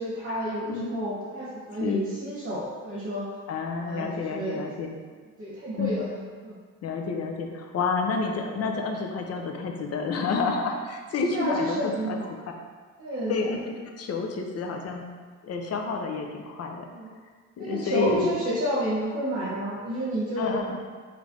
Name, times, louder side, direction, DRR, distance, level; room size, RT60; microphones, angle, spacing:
voice 1, 0.0-3.2 3.8-4.6 5.4-6.1 6.4-6.5 11.3-12.3 13.0-13.6 16.9-17.1 17.6-20.5, right 1 dB, 45° right, -9 dB, 1.2 m, -30 dB
voice 2, 3.5-5.0 5.8-6.1 6.8-12.2 12.5-12.6 13.3-13.6 14.0-15.1 15.4-16.9 17.6-18.3 20.4-20.8, left 4 dB, 55° left, 3 dB, 0.6 m, -29 dB
3.3 x 3.2 x 3.8 m, 1.5 s
cardioid pair, 90°, 30 cm